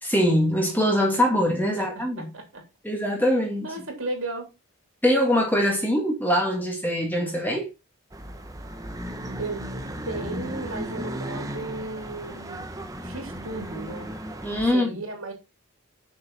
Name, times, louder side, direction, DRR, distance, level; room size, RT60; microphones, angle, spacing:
voice 1, 0.0-2.3 2.8-3.7 5.0-7.7 14.4-14.9, equal, 10° left, 1.8 m, -23 dB
voice 2, 2.2-2.6 3.6-4.5 9.4-9.6 10.1-12.7 13.0-14.1 14.7-15.3, right 2 dB, 70° right, 3.3 m, -34 dB
sound 1, 8.1-14.7, right 1 dB, 15° right, 0.9 m, -35 dB
6.8 x 6.5 x 4.2 m
head